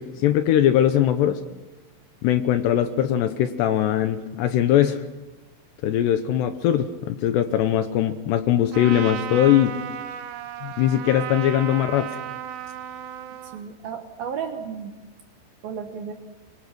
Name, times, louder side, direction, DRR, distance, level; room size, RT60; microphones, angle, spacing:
voice 1, 0.0-1.4 2.2-5.0 5.8-9.8 10.6-12.1, left 11 dB, 75° left, 9 dB, 2.7 m, -21 dB
Trumpet, 8.7-13.6, right 10 dB, 80° right, 2.1 m, -34 dB
voice 2, 13.5-15.0 15.6-16.1, right 7 dB, 65° right, 5 dB, 2.7 m, -33 dB
24.5 x 24.5 x 6.1 m, 1.1 s
omnidirectional pair, 5.6 m